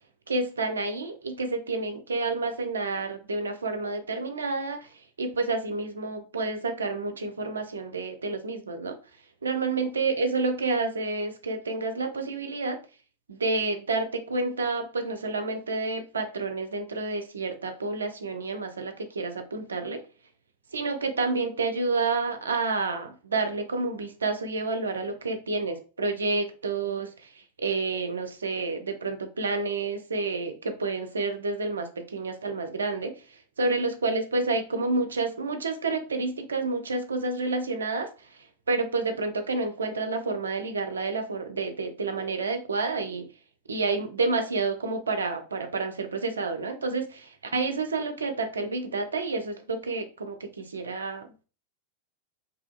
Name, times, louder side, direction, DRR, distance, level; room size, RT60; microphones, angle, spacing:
voice 1, 0.3-9.0 9.4-12.8 13.3-20.0 20.7-43.3 43.7-51.3, right 3 dB, 70° right, 7 dB, 0.4 m, -29 dB
2.7 x 2.3 x 2.5 m, 0.35 s
figure-of-eight pair, 90°, 0 cm